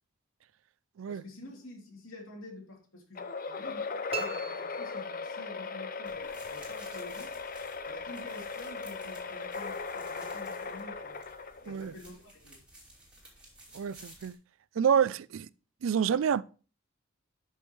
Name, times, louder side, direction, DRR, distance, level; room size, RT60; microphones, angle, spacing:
voice 1, 1.1-7.3 7.8-11.2 11.6-12.6, left 2 dB, 80° left, 3.0 m, -48 dB
sound 1, 3.1-11.9, left 4 dB, 45° left, 0.7 m, -38 dB
sound 2, 4.1-5.7, right 6 dB, 30° right, 0.9 m, -41 dB
sound 3, 6.0-14.3, right 1 dB, 5° right, 2.7 m, -55 dB
voice 2, 13.7-14.4 14.8-15.5 15.8-16.4, right 7 dB, 70° right, 0.4 m, -28 dB
12.0 x 5.6 x 3.1 m
head